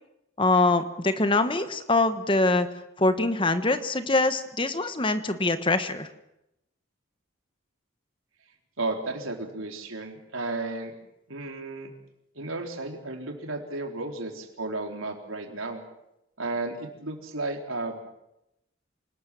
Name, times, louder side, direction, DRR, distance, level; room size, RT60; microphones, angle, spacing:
voice 1, 0.4-2.7 3.0-6.1, left 2 dB, 25° left, 10 dB, 1.3 m, -24 dB
voice 2, 8.8-10.9 11.3-11.9 12.4-15.8 16.4-18.0, right 2 dB, 80° right, 3 dB, 4.1 m, -33 dB
27.0 x 19.5 x 7.6 m, 0.86 s
head